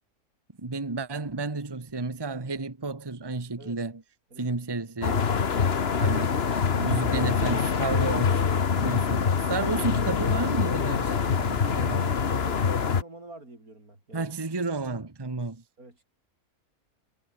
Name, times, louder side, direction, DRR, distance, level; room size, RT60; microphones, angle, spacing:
voice 1, 0.6-4.0 4.4-5.3 6.0-6.3 6.7-12.0 14.1-15.6, right 3 dB, 15° right, 1.3 m, -32 dB
sound 1, 5.0-13.0, left 6 dB, 45° left, 1.4 m, -25 dB
voice 2, 11.7-14.3 15.8-16.0, right 2 dB, 70° right, 7.4 m, -47 dB
omnidirectional pair, 1.6 m